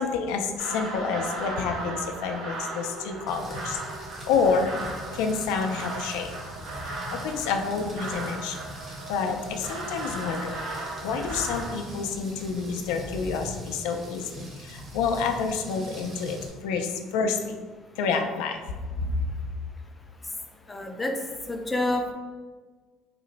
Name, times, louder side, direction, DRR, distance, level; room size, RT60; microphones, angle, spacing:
voice 1, 0.0-3.8 4.3-4.7 5.1-6.3 7.1-8.6 9.1-10.6 11.0-16.4 16.6-17.6 18.0-18.6, left 5 dB, 85° left, 5 dB, 0.3 m, -28 dB
sound 1, 0.6-11.7, right 2 dB, 85° right, 1.3 m, -36 dB
Rain, 3.3-16.5, equal, 30° right, 0.8 m, -42 dB
voice 2, 20.7-21.1 21.5-22.1, left 2 dB, 15° left, 3 dB, 0.4 m, -28 dB
2.9 x 2.0 x 3.8 m, 1.4 s
cardioid pair, 120°, 0 cm